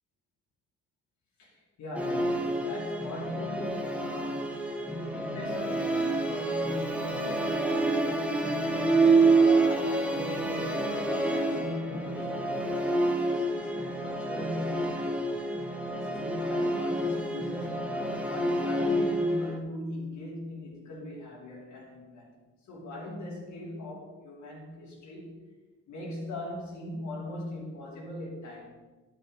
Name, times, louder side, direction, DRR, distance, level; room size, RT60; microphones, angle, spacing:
voice 1, 1.4-15.2 15.9-22.3 22.7-25.4 25.9-28.8, left 1 dB, 70° left, -5 dB, 2.9 m, -40 dB
Musical instrument, 2.0-19.6, right 2 dB, 5° right, 1.3 m, -28 dB
11.0 x 5.4 x 5.4 m, 1.2 s
cardioid pair, 90°, 30 cm